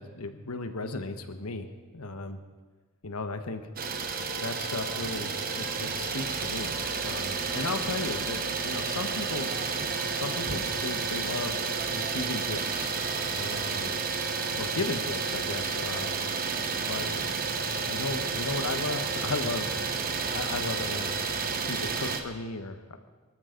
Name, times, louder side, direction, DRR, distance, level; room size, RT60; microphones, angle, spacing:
voice 1, 0.0-1.7 1.9-2.4 3.0-3.6 4.4-6.7 7.0-9.5 10.2-13.9 14.5-16.2 16.8-17.3 17.8-19.7 20.3-21.1 21.7-23.0, left 3 dB, 90° left, 8 dB, 1.2 m, -35 dB
Idling, 3.8-22.2, right 5 dB, 40° right, 1.1 m, -31 dB
24.0 x 13.5 x 3.9 m, 1.3 s
head